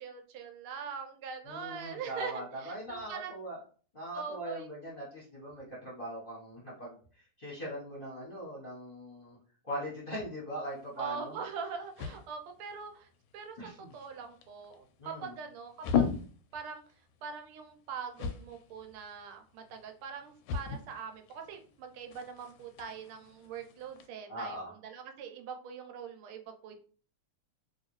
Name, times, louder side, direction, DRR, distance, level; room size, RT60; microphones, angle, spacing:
voice 1, 0.0-3.3 4.1-4.7 11.0-13.1 13.3-13.6 13.9-16.1 16.5-16.8 17.2-26.7, right 6 dB, 80° right, 6 dB, 1.4 m, -42 dB
voice 2, 1.4-3.6 3.9-9.4 9.6-11.3 13.6-13.9 15.0-15.4 24.3-24.8, right 1 dB, 35° left, -7 dB, 0.9 m, -41 dB
sound 1, 10.7-24.1, left 7 dB, 75° left, 1.3 m, -39 dB
3.2 x 2.7 x 3.0 m, 0.41 s
omnidirectional pair, 2.4 m